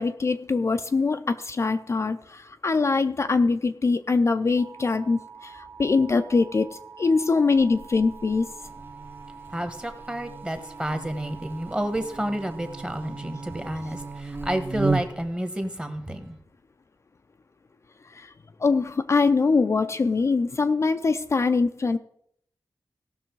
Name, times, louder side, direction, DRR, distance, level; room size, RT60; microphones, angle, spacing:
voice 1, 0.0-8.5 18.1-18.3 18.6-22.0, left 4 dB, 40° left, 0.4 m, -23 dB
sound 1, 4.6-14.2, right 6 dB, 65° right, 1.3 m, -46 dB
Buzz, 7.6-15.4, right 3 dB, 30° right, 0.6 m, -35 dB
voice 2, 9.5-16.4, right 1 dB, 15° right, 1.2 m, -30 dB
17.0 x 6.3 x 4.6 m
wide cardioid pair, 155°, 8 cm